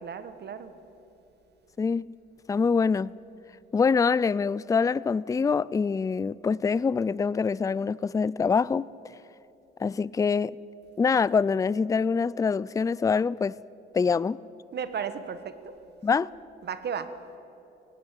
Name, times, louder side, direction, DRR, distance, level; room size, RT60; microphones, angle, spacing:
voice 1, 0.0-0.7 14.7-15.7 16.6-17.1, right 7 dB, 55° right, 1.4 m, -34 dB
voice 2, 2.5-3.1 3.7-9.1 9.8-10.6 11.0-13.5 13.9-14.4 16.0-16.3, left 5 dB, 15° left, 0.3 m, -25 dB
18.5 x 17.0 x 8.8 m
cardioid pair, 90°, 20 cm